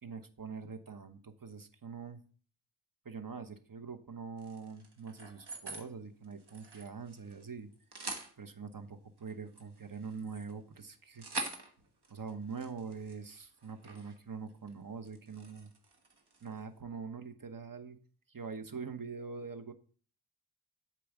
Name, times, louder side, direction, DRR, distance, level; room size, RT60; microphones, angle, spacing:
voice 1, 0.0-2.2 3.0-7.7 8.4-11.2 12.1-15.7 16.4-18.0 18.3-19.7, right 5 dB, 55° right, 7 dB, 1.1 m, -44 dB
sound 1, 4.4-5.9 6.2-7.5 7.7-8.3 9.2-14.2 14.5-14.7 15.1-16.6, right 3 dB, 80° right, 1.5 m, -45 dB
8.5 x 4.7 x 7.3 m, 0.43 s
wide cardioid pair, 60°, 39 cm